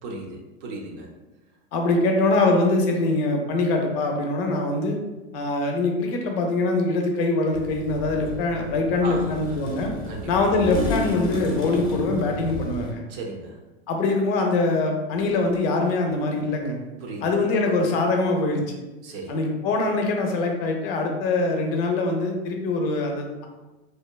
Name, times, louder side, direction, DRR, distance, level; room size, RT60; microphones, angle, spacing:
voice 1, 0.0-1.1 9.0-9.7 10.1-10.3 13.1-13.6 17.0-17.2 19.0-19.4, right 2 dB, 50° right, 1 dB, 0.6 m, -36 dB
voice 2, 1.7-5.0 5.3-9.9 10.3-13.0 13.9-16.8 17.2-18.6 19.3-23.5, left 2 dB, 60° left, 2 dB, 0.6 m, -23 dB
sound 1, 7.5-12.9, left 2 dB, 15° left, 0.4 m, -32 dB
2.8 x 2.1 x 2.2 m, 1.1 s
hypercardioid pair, 120°, 34 cm